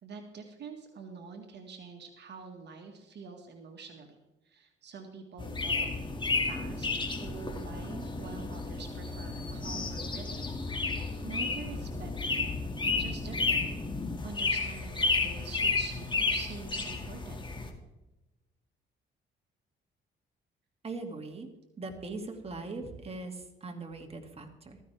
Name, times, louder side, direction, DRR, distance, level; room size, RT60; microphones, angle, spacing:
voice 1, 0.0-4.2 4.4-6.0 6.3-12.5 13.0-13.7 14.2-17.4, right 5 dB, 60° right, 4 dB, 1.9 m, -46 dB
sound 1, 5.4-17.7, left 3 dB, 25° left, 2.3 m, -32 dB
voice 2, 20.8-21.5 21.8-24.8, right 3 dB, 30° right, 3 dB, 2.4 m, -40 dB
15.0 x 14.5 x 3.5 m, 1.0 s
cardioid pair, 90°, 20 cm